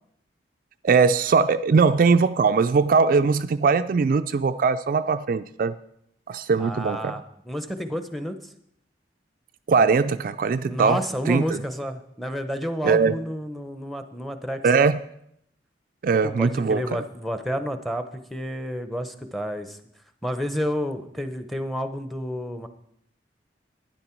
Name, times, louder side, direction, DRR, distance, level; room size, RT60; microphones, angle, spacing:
voice 1, 0.8-5.7 6.3-7.1 9.7-11.0 11.3-11.4 12.8-13.1 14.6-15.0 16.0-16.8, right 5 dB, 50° right, 9 dB, 0.3 m, -20 dB
voice 2, 6.6-8.5 10.6-14.9 16.2-19.8 20.2-22.7, equal, ahead, 9 dB, 0.7 m, -30 dB
12.0 x 10.0 x 4.5 m, 0.72 s
head